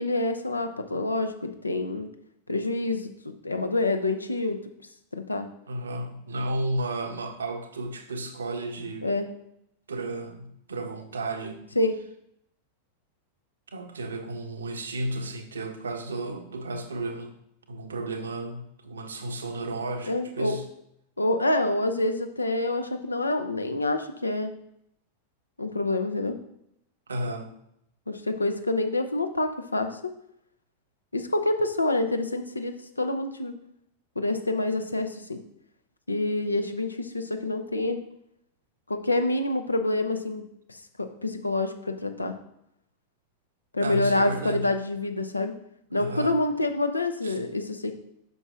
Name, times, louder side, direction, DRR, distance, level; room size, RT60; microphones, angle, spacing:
voice 1, 0.0-2.1 2.5-4.6 5.1-5.5 9.0-9.3 11.8-12.0 20.0-20.6 21.2-24.6 25.6-26.4 28.1-30.1 31.1-33.5 34.2-35.4 36.1-38.0 38.9-42.4 43.7-45.5 45.9-47.9, left 2 dB, 80° left, 7 dB, 0.7 m, -27 dB
voice 2, 5.7-9.1 9.9-11.6 13.7-17.3 17.7-20.7 27.1-27.5 43.8-44.7 45.9-46.4 47.2-47.3, right 2 dB, 70° right, 6 dB, 1.0 m, -33 dB
8.1 x 6.0 x 3.7 m, 0.75 s
figure-of-eight pair, 90°, 0 cm